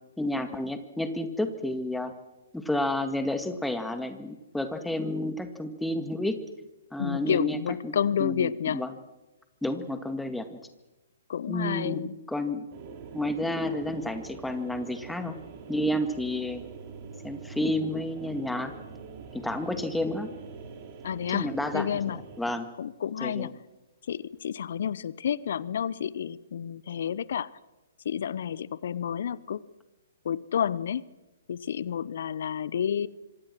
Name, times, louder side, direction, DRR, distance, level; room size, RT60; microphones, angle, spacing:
voice 1, 0.2-2.1 2.5-6.4 6.9-7.6 7.8-7.9 8.2-8.9 9.6-10.6 11.5-12.6 13.1-15.4 15.7-16.6 17.2-18.7 19.3-20.3 21.3-22.0 22.4-22.7 23.2-23.5, left 1 dB, 5° left, 8 dB, 2.1 m, -30 dB
voice 2, 7.0-8.8 11.3-12.1 21.0-22.2 22.8-23.5 24.1-27.5 28.0-29.6 30.2-31.0 31.5-33.1, left 8 dB, 55° left, 20 dB, 0.9 m, -30 dB
sound 1, 12.7-22.4, right 5 dB, 35° right, 4.1 m, -44 dB
25.5 x 25.5 x 6.1 m, 1.0 s
figure-of-eight pair, 125°, 0 cm